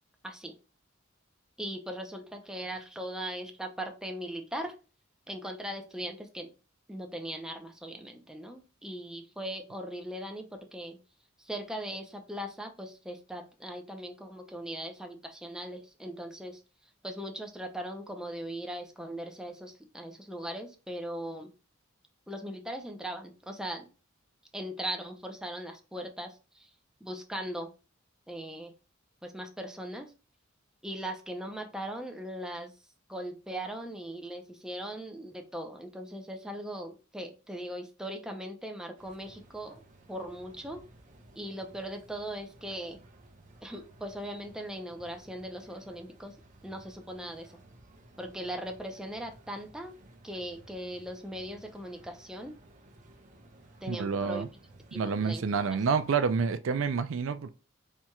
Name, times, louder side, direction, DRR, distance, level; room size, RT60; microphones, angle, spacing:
voice 1, 0.2-0.5 1.6-4.7 5.3-6.5 6.9-11.0 11.4-16.6 17.0-21.5 22.3-23.9 24.5-26.7 27.0-27.7 28.3-28.7 29.2-30.1 30.8-32.7 33.1-39.8 40.1-40.8 41.4-43.0 43.6-46.3 46.6-47.5 48.2-49.9 50.2-52.6 53.8-54.5 54.9-55.8, right 1 dB, 5° right, 0.7 m, -39 dB
sound 1, 39.0-56.1, right 2 dB, 40° right, 0.9 m, -56 dB
voice 2, 53.9-54.5 54.9-57.5, right 5 dB, 70° right, 0.4 m, -28 dB
4.5 x 4.3 x 2.3 m
head